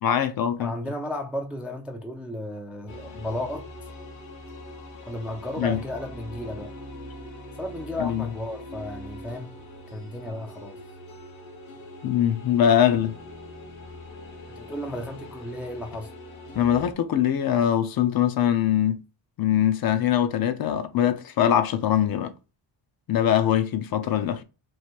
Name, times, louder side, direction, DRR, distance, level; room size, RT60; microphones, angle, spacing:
voice 1, 0.0-0.7 5.6-5.8 8.0-8.2 12.0-13.1 16.5-19.0 19.4-22.3 23.1-24.4, left 10 dB, 55° left, 0.5 m, -22 dB
voice 2, 0.6-3.7 5.1-6.7 7.6-9.5 9.9-10.8 14.6-16.1, left 1 dB, 5° right, 0.3 m, -34 dB
sound 1, 2.9-16.9, left 1 dB, 85° left, 1.3 m, -42 dB
3.1 x 2.5 x 4.4 m
wide cardioid pair, 160°, 45 cm